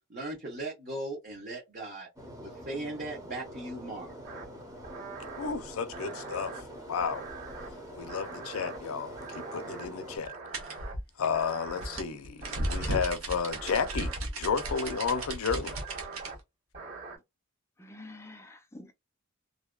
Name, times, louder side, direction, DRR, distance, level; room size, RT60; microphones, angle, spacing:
voice 1, 0.0-2.1 2.4-4.1, right 2 dB, 40° right, 0.8 m, -38 dB
sound 1, 2.2-10.2, right 1 dB, 15° right, 0.7 m, -45 dB
sound 2, 4.2-4.5 4.8-5.5 5.9-6.6 7.0-7.7 8.1-8.8 9.2-9.9 10.2-10.9 11.3-12.0 12.4-13.1 13.5-14.2 14.6-15.3 15.7-16.4 16.7-17.2, right 4 dB, 60° right, 1.5 m, -43 dB
voice 2, 5.4-7.3 8.0-10.9 11.2-15.8, left 6 dB, 75° left, 0.5 m, -32 dB
sound 3, 10.5-16.3, right 1 dB, 75° right, 0.8 m, -35 dB
voice 3, 17.8-18.9, left 2 dB, 15° left, 0.4 m, -47 dB
2.7 x 2.2 x 2.3 m
head